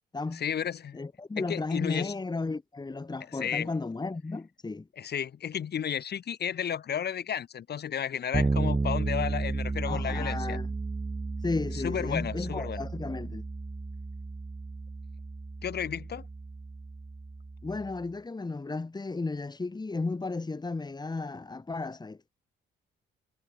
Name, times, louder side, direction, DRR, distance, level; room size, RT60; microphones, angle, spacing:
voice 1, 0.3-1.0 1.4-2.1 3.3-3.7 5.0-10.6 11.7-12.8 15.6-16.3, left 8 dB, 55° left, 2.7 m, -33 dB
voice 2, 0.9-4.9 9.9-10.7 11.4-13.4 17.6-22.3, left 3 dB, 20° left, 2.8 m, -34 dB
Bass guitar, 8.3-18.0, right 3 dB, 20° right, 2.3 m, -33 dB
cardioid pair, 90°, 20 cm